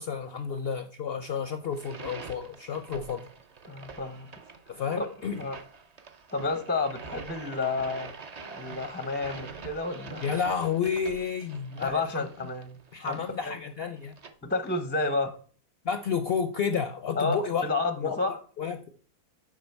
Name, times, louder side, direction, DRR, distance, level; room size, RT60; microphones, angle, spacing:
voice 1, 0.0-3.2 4.7-5.4 10.2-12.3 12.9-14.1 15.8-17.6 18.0-18.2 18.6-18.9, left 6 dB, 65° left, 8 dB, 0.6 m, -31 dB
sound 1, 1.7-14.3, right 4 dB, 55° right, 0.4 m, -45 dB
voice 2, 3.6-4.3 5.0-5.1 5.4-5.6 6.3-8.1 8.5-10.2 11.8-13.6 14.4-15.3 17.2-18.4, left 3 dB, 15° left, 9 dB, 0.3 m, -30 dB
7.4 x 4.8 x 4.6 m, 0.42 s
omnidirectional pair, 1.6 m